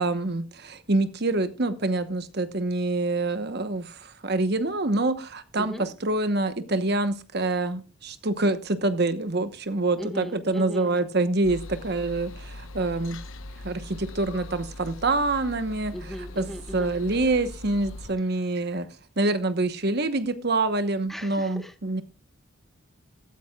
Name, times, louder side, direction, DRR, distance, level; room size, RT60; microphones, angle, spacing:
voice 1, 0.0-13.2 13.6-15.9 16.4-16.5 16.7-18.9 19.2-22.0, right 2 dB, 50° right, 10 dB, 1.1 m, -26 dB
voice 2, 10.0-11.0 15.9-17.0 21.1-21.7, equal, ahead, 6 dB, 1.2 m, -37 dB
sound 1, 11.4-18.1, left 1 dB, 75° left, 1.0 m, -41 dB
14.5 x 14.5 x 2.4 m, 0.34 s
head